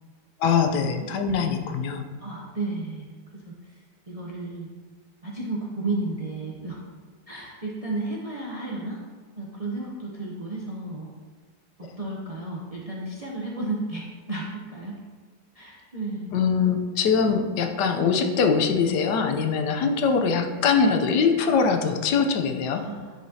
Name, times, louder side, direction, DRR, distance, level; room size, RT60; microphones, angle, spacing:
voice 1, 0.4-2.0 16.3-22.9, left 5 dB, 85° left, 5 dB, 1.3 m, -22 dB
voice 2, 1.0-1.8 2.2-4.7 5.2-6.8 7.3-9.0 9.4-11.1 12.0-15.0 15.5-16.3 22.7-23.1, right 2 dB, 40° right, -4 dB, 0.5 m, -33 dB
9.8 x 5.0 x 2.7 m, 1.4 s
omnidirectional pair, 1.8 m